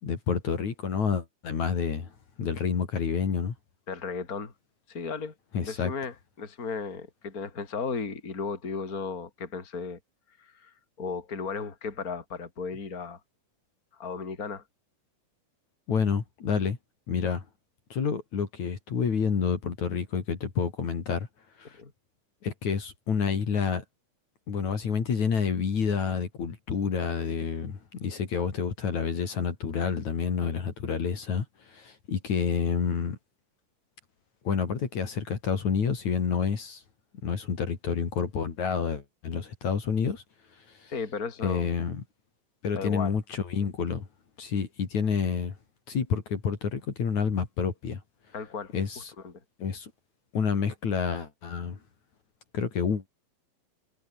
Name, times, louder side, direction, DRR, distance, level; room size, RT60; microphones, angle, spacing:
voice 1, 0.0-2.1 2.4-3.5 5.5-5.9 15.9-16.8 17.1-17.5 17.9-21.3 21.6-21.8 22.4-23.8 24.5-33.2 34.4-36.8 37.2-40.2 40.6-40.9 41.4-42.0 42.6-44.1 44.4-45.5 45.9-48.0 48.7-49.1 49.6-49.9 50.3-51.8 52.5-53.1, left 6 dB, 55° left, 4.4 m, -29 dB
voice 2, 3.9-4.5 4.9-5.3 5.6-10.0 10.4-13.2 13.9-14.6 21.8-21.9 40.9-41.7 42.7-43.1 48.3-48.7 49.2-49.3, left 5 dB, 25° left, 3.7 m, -35 dB
omnidirectional pair, 4.0 m